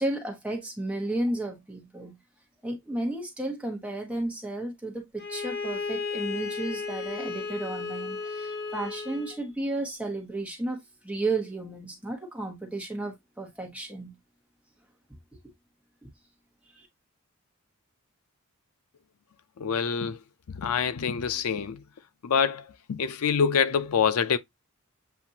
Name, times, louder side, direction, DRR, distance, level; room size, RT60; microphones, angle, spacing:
voice 1, 0.0-2.2 2.6-14.2 16.6-16.9, right 2 dB, 5° right, 1.1 m, -33 dB
Bowed string instrument, 5.2-9.4, left 4 dB, 45° left, 0.7 m, -34 dB
voice 2, 19.6-20.2 20.5-21.8 22.2-24.4, left 6 dB, 85° left, 0.5 m, -26 dB
7.6 x 2.5 x 2.7 m
head